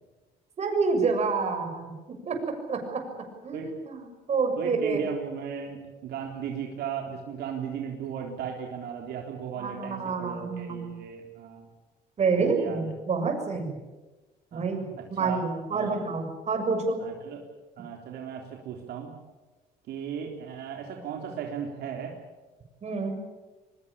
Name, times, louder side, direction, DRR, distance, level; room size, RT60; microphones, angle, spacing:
voice 1, 0.6-2.0 2.3-2.4 2.7-3.0 3.4-5.0 9.6-11.0 12.2-13.8 14.5-14.8 15.1-17.0 22.8-23.2, right 4 dB, 40° right, 5 dB, 7.0 m, -28 dB
voice 2, 4.6-11.7 12.4-12.9 14.5-14.7 15.0-15.4 15.7-16.0 17.0-17.4 17.8-19.1 19.9-22.1, right 7 dB, 75° right, 1 dB, 3.7 m, -36 dB
23.5 x 21.0 x 8.8 m, 1.2 s
cardioid pair, 110°, 17 cm